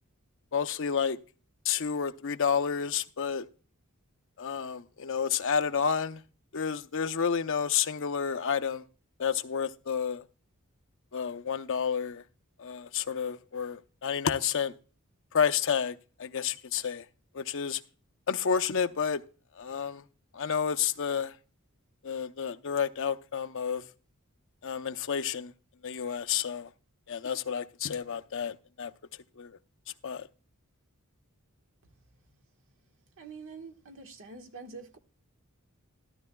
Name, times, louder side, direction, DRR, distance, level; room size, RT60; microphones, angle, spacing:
voice 1, 0.5-1.2 1.6-3.4 4.4-6.2 6.5-8.8 9.2-10.2 11.1-12.2 12.6-14.7 15.3-17.0 17.3-17.8 18.3-19.2 19.6-20.0 20.3-21.3 22.0-23.8 24.6-25.5 25.8-26.7 27.1-28.9 29.4-29.6 30.0-30.3, left 7 dB, 60° left, 0.7 m, -30 dB
voice 2, 33.2-35.0, right 4 dB, 65° right, 1.4 m, -45 dB
13.5 x 13.0 x 2.2 m
head